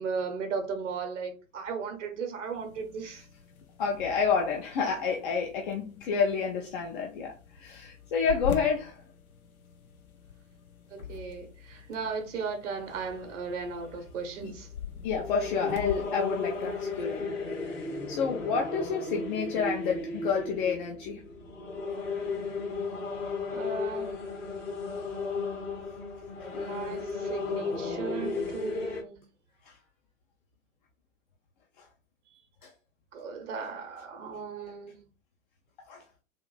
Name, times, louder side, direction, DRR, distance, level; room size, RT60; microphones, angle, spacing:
voice 1, 0.0-3.2 10.9-14.7 23.5-24.3 26.5-29.2 33.1-35.0, right 5 dB, 60° right, 0.9 m, -36 dB
sound 1, 2.5-17.3, left 7 dB, 85° left, 0.6 m, -44 dB
voice 2, 3.8-9.0 14.4-14.5 15.0-17.2 18.1-21.3 29.6-29.8 31.8-31.9 32.6-32.7 35.9-36.0, left 5 dB, 40° left, 0.5 m, -29 dB
sound 2, 12.9-29.0, left 3 dB, 65° left, 1.3 m, -35 dB
3.5 x 2.5 x 2.3 m
figure-of-eight pair, 100°, 41 cm